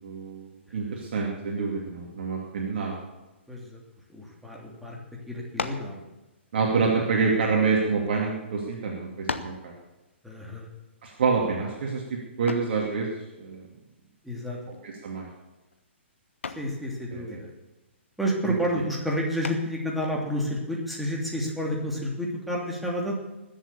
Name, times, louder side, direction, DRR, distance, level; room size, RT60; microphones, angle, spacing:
voice 1, 0.0-3.0 6.5-9.7 11.0-13.1 13.4-13.6 14.8-15.3 17.1-17.4, right 4 dB, 50° right, -1 dB, 2.5 m, -27 dB
voice 2, 3.5-3.8 4.1-5.0 5.3-6.0 10.2-10.7 14.2-14.6 16.5-17.5 18.2-23.2, equal, ahead, -3 dB, 3.1 m, -30 dB
sound 1, 5.5-6.0 6.9-8.1 8.7-8.8 9.3-9.7 12.5-12.8 14.7-15.1 15.5-15.8 16.4-16.8 19.4-19.9, left 4 dB, 75° left, 1.2 m, -35 dB
20.5 x 7.9 x 7.0 m, 1.0 s
figure-of-eight pair, 120°, 7 cm